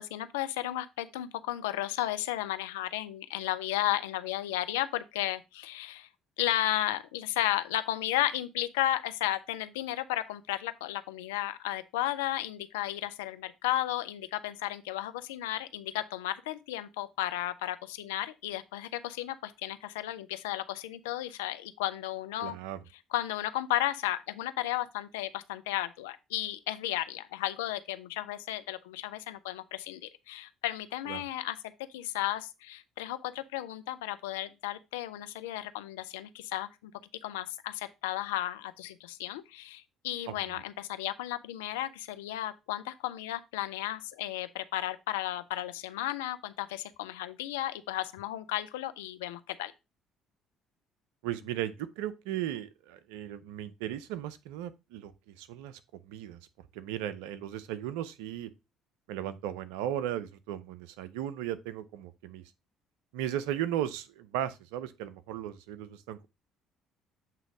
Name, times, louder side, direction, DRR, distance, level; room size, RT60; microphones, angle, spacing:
voice 1, 0.0-6.1 6.4-22.6 23.1-31.6 31.9-36.9 37.2-49.7, left 14 dB, 80° left, 0.4 m, -34 dB
voice 2, 22.4-22.8 31.1-31.2 40.3-40.4 51.2-55.8 56.1-56.4 56.7-58.5 59.1-62.4 63.1-66.3, right 11 dB, 75° right, 0.5 m, -36 dB
7.5 x 3.0 x 4.7 m
hypercardioid pair, 55°, 0 cm